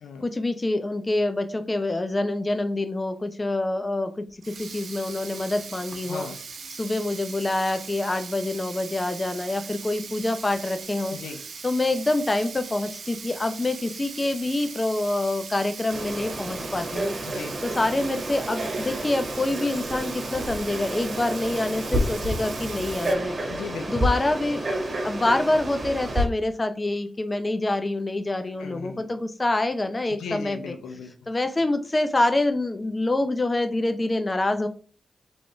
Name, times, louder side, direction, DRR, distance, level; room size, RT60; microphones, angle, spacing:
voice 1, 0.2-6.2 6.8-11.2 11.6-17.1 17.6-23.4 23.9-24.6 25.0-30.7 31.3-34.7, left 2 dB, 35° left, 9 dB, 0.7 m, -26 dB
Sink (filling or washing), 4.3-23.1, right 5 dB, 75° right, 0.7 m, -40 dB
voice 2, 6.0-6.4 11.1-11.4 17.2-17.6 23.5-24.0 28.6-29.1 30.1-31.1, left 5 dB, 90° left, 5 dB, 0.6 m, -37 dB
Frog, 15.9-26.3, right 1 dB, 50° right, 1.5 m, -30 dB
3.8 x 3.5 x 3.3 m, 0.40 s
supercardioid pair, 40°, 0 cm